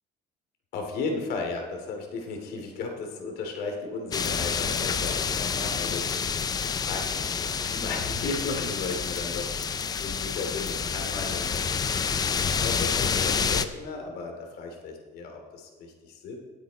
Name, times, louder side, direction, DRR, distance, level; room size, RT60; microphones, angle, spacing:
voice 1, 0.7-11.6 12.2-16.4, left 4 dB, 65° left, 3 dB, 2.7 m, -35 dB
sound 1, 4.1-13.6, left 6 dB, 20° left, 0.5 m, -28 dB
18.0 x 8.4 x 4.1 m, 1.4 s
cardioid pair, 160°, 17 cm